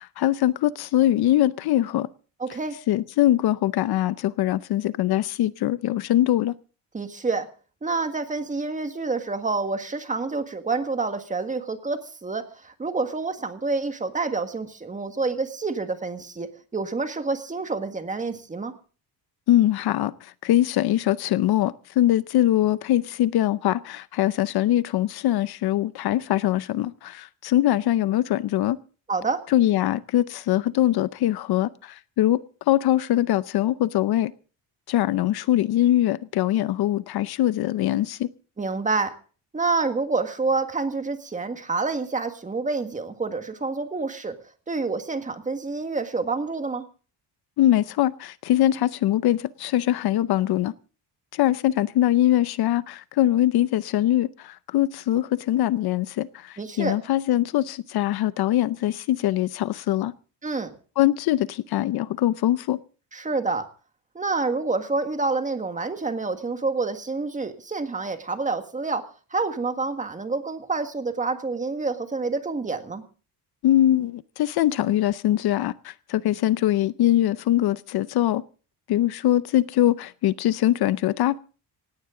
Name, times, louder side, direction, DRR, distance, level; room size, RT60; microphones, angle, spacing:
voice 1, 0.0-2.1 2.9-6.5 19.5-28.8 29.5-32.4 32.7-34.3 34.9-38.3 47.6-50.7 51.3-60.1 61.0-62.8 73.6-78.4 78.9-81.4, left 13 dB, 60° left, 0.7 m, -22 dB
voice 2, 2.4-2.8 6.9-7.5 7.8-18.7 29.1-29.4 38.6-39.1 39.5-44.3 44.7-46.9 56.6-57.0 60.4-60.7 63.1-63.7 64.1-69.0 69.3-73.0, right 3 dB, 15° right, 1.7 m, -28 dB
18.0 x 17.5 x 3.8 m
cardioid pair, 160°, 42 cm